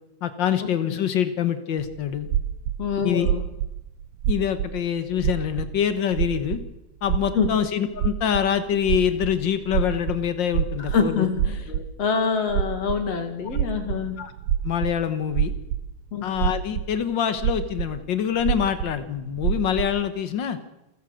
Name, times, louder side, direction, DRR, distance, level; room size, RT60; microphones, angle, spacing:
voice 1, 0.2-2.3 3.0-3.3 4.3-6.6 7.0-11.3 11.7-11.8 14.2-14.3 14.6-15.5 16.2-20.6, left 9 dB, 70° left, 11 dB, 1.0 m, -25 dB
sound 1, 1.8-4.8 5.1-5.9 6.1-6.6 7.0-7.5 7.9-12.1 12.5-13.1 13.4-15.0 15.3-16.9 17.4-18.0 18.3-19.9, right 10 dB, 75° right, 2.2 m, -26 dB
voice 2, 2.8-3.4 7.3-7.5 10.9-11.7 12.0-14.2 16.1-16.2, left 6 dB, 55° left, 7 dB, 3.0 m, -25 dB
28.0 x 14.5 x 6.4 m, 0.90 s
omnidirectional pair, 3.8 m